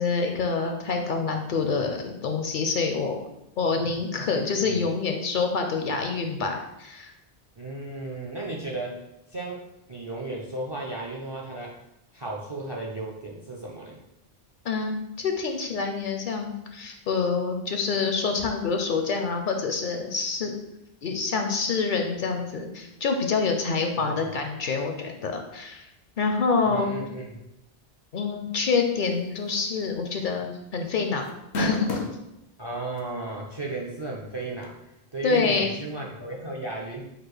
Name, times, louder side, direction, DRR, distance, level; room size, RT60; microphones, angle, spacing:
voice 1, 0.0-3.1 3.6-7.1 14.6-20.5 21.0-25.8 26.2-26.9 28.1-31.3 31.6-31.9 35.2-35.7, left 4 dB, 60° left, 4 dB, 0.6 m, -26 dB
voice 2, 7.6-11.8 12.1-14.0 24.0-24.2 26.6-27.5 32.6-34.8 35.1-37.1, right 2 dB, 40° right, -1 dB, 0.4 m, -35 dB
sound 1, 29.6-29.8 30.2-30.3 31.3-32.2 33.0-33.1 34.6-34.7, left 1 dB, 85° left, 0.9 m, -28 dB
4.8 x 2.1 x 4.7 m, 0.87 s
omnidirectional pair, 1.1 m